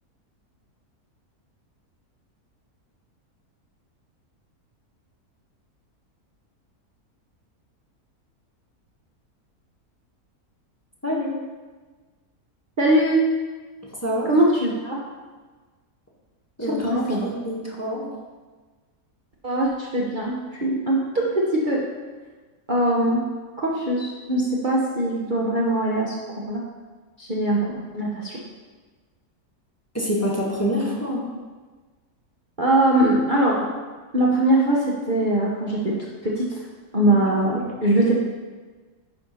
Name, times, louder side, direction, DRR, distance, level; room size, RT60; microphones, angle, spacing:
voice 1, 11.0-11.3 14.0-14.3 16.6-18.1 29.9-31.2 37.1-37.2 37.5-37.7, equal, 10° left, -4 dB, 1.8 m, -26 dB
voice 2, 12.8-13.2 14.3-15.0 16.6-17.3 19.4-21.8 22.7-23.2 23.6-26.2 26.4-26.6 27.2-27.6 27.9-28.4 32.6-33.6 34.1-35.9 36.2-36.6 36.9-38.2, right 1 dB, 35° right, -4 dB, 1.2 m, -21 dB
11.5 x 4.9 x 5.7 m, 1.4 s
omnidirectional pair, 1.6 m